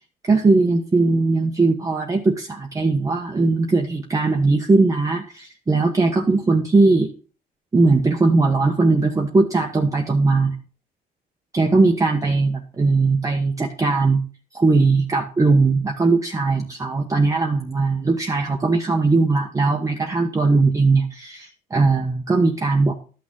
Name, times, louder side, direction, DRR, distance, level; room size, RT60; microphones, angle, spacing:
voice 1, 0.2-7.1 7.7-10.5 11.5-14.2 14.5-22.9, right 3 dB, 20° right, 1 dB, 1.2 m, -19 dB
12.5 x 6.2 x 3.8 m, 0.38 s
cardioid pair, 110°, 17 cm